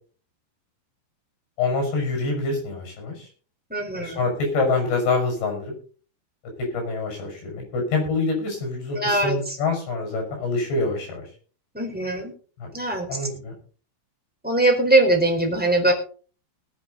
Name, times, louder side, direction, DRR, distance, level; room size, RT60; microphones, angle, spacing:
voice 1, 1.6-3.3 4.0-5.7 6.7-11.2 12.6-12.7 13.1-13.5, left 3 dB, 65° left, 3 dB, 8.7 m, -26 dB
voice 2, 3.7-4.2 8.9-9.6 11.7-12.3 12.7-13.3 14.4-15.9, right 2 dB, ahead, 0 dB, 3.8 m, -21 dB
20.0 x 9.7 x 4.2 m, 0.40 s
omnidirectional pair, 5.2 m